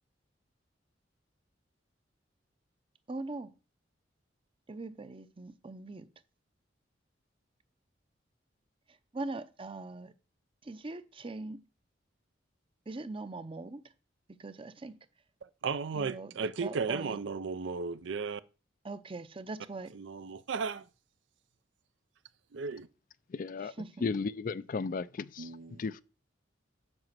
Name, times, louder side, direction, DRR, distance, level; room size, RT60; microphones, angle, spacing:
voice 1, 3.1-3.5 4.7-6.1 9.1-10.1 10.6-11.6 12.9-13.8 14.4-15.0 15.9-16.3 16.6-17.2 18.8-19.9 23.8-23.9, right 2 dB, 30° right, 0.7 m, -41 dB
voice 2, 15.4-18.4 19.9-20.9 22.5-22.9 25.4-26.0, right 5 dB, 75° right, 0.5 m, -35 dB
voice 3, 23.3-23.7 24.0-25.5 25.8-26.0, left 4 dB, 45° left, 0.4 m, -34 dB
7.9 x 5.1 x 7.4 m
head